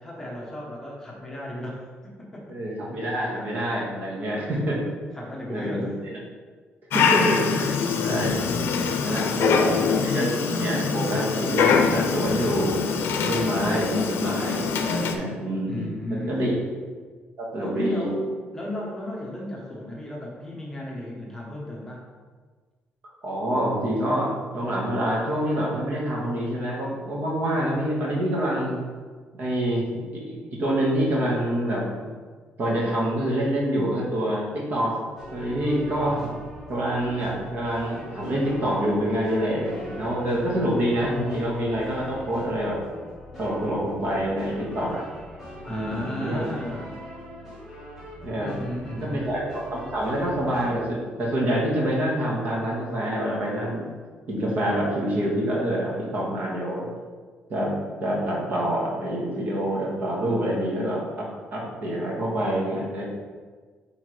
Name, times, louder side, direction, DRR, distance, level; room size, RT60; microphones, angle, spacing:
voice 1, 0.0-1.9 2.2-2.5 4.3-4.7 5.1-6.0 7.6-7.7 8.4-9.4 15.6-16.4 17.6-22.0 45.7-47.0 48.4-49.3, left 1 dB, 10° left, -3 dB, 1.0 m, -35 dB
voice 2, 2.5-4.8 5.5-6.2 6.9-7.7 8.0-8.4 9.0-12.8 13.1-16.6 17.4-18.1 23.2-28.8 29.3-29.9 30.1-32.1 32.6-35.0 35.3-36.2 36.7-42.8 43.4-45.1 45.7-46.5 48.2-48.5 49.0-49.4 49.7-53.9 54.3-56.9 57.5-57.7 58.0-63.0, right 1 dB, 50° right, -4 dB, 1.7 m, -26 dB
Dog, 6.9-15.1, left 5 dB, 70° left, 0.6 m, -24 dB
sound 1, 35.2-50.8, equal, 10° right, 1.8 m, -41 dB
8.2 x 3.9 x 3.3 m, 1.5 s
cardioid pair, 150°, 4 cm